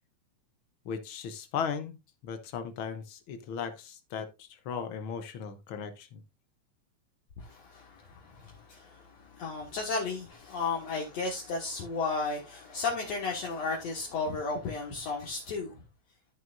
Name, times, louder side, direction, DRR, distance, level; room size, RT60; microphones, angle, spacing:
voice 1, 0.8-2.0 2.2-6.2, left 6 dB, 80° left, 1.1 m, -37 dB
voice 2, 7.4-15.7, left 4 dB, 60° left, 2.6 m, -34 dB
13.5 x 6.2 x 2.5 m
omnidirectional pair, 3.5 m